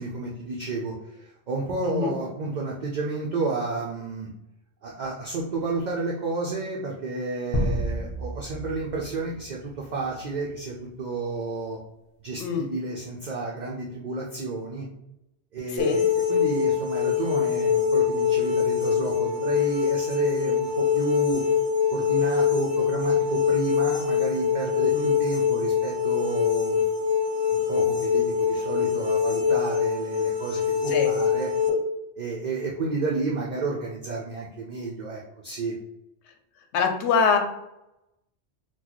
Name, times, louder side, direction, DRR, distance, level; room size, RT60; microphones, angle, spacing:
voice 1, 0.0-4.3 4.8-11.8 12.2-14.9 15.5-21.4 21.9-26.8 27.5-31.5 32.2-35.7, right 3 dB, 55° right, -2 dB, 0.5 m, -31 dB
sound 1, 7.5-10.1, equal, 45° left, 0.5 m, -30 dB
sound 2, 15.8-31.7, left 7 dB, 20° right, 1.0 m, -24 dB
voice 2, 36.7-37.4, left 5 dB, 75° left, 5 dB, 0.9 m, -23 dB
3.9 x 2.2 x 3.0 m, 0.87 s
omnidirectional pair, 1.2 m